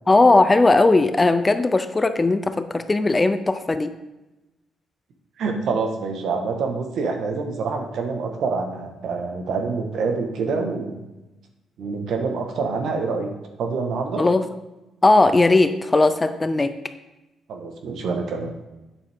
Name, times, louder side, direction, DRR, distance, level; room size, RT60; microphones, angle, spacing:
voice 1, 0.1-3.9 14.2-14.4 15.0-16.8, left 2 dB, 20° left, 11 dB, 0.6 m, -18 dB
voice 2, 5.4-11.0 11.8-13.3 13.6-14.2 17.5-18.7, right 4 dB, 70° right, 4 dB, 1.4 m, -26 dB
8.8 x 7.2 x 3.6 m, 1.0 s
cardioid pair, 90°, 0 cm